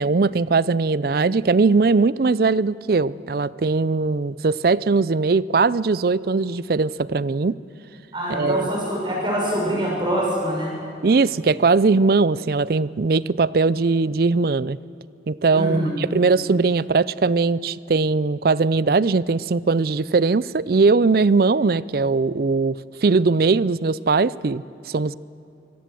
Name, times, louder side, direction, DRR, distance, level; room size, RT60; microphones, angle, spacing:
voice 1, 0.0-7.6 8.3-8.7 11.0-14.8 15.3-25.2, right 4 dB, 55° right, 20 dB, 0.5 m, -20 dB
voice 2, 8.1-10.7 15.5-15.9, equal, 25° right, -2 dB, 6.3 m, -24 dB
24.5 x 18.0 x 7.7 m, 2.9 s
head